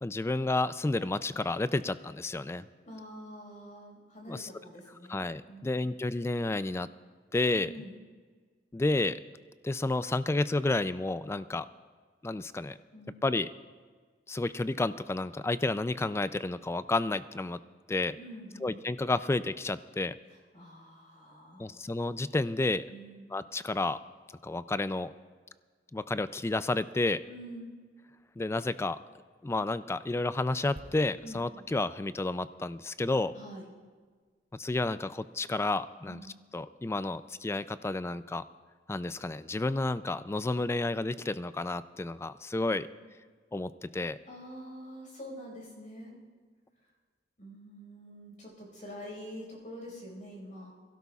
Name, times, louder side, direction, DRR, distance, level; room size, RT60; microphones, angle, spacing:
voice 1, 0.0-2.7 4.2-4.5 5.1-6.9 7.3-7.7 8.7-9.2 9.6-11.7 12.2-12.8 13.2-13.5 14.3-17.6 17.9-18.2 18.6-20.1 21.6-22.8 23.3-24.0 24.4-25.1 25.9-27.2 28.4-29.0 29.4-33.3 34.5-36.2 36.5-38.4 38.9-42.9 43.5-44.2, left 2 dB, 15° left, 14 dB, 0.3 m, -31 dB
voice 2, 2.8-5.8 7.6-8.0 12.9-13.2 18.1-18.8 20.5-21.8 22.9-23.2 27.3-27.7 31.2-31.6 33.3-33.7 36.0-36.3 42.6-42.9 44.3-46.2 47.4-50.7, equal, 45° left, -1 dB, 5.0 m, -46 dB
sound 1, 32.9-34.4 34.7-34.9, right 1 dB, 35° right, 0.9 m, -56 dB
23.0 x 16.5 x 2.4 m, 1.5 s
head